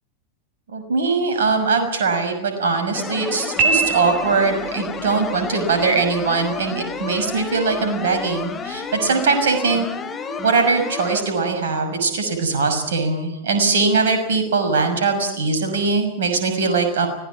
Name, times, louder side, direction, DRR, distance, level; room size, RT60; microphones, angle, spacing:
voice 1, 0.7-9.9 10.4-17.1, right 4 dB, 60° right, 6 dB, 6.2 m, -21 dB
sound 1, 2.9-11.2, left 5 dB, 20° left, 3.0 m, -30 dB
Piano, 3.6-4.7, right 4 dB, 35° right, 3.5 m, -21 dB
25.0 x 18.0 x 8.6 m, 0.81 s
figure-of-eight pair, 90°, 0 cm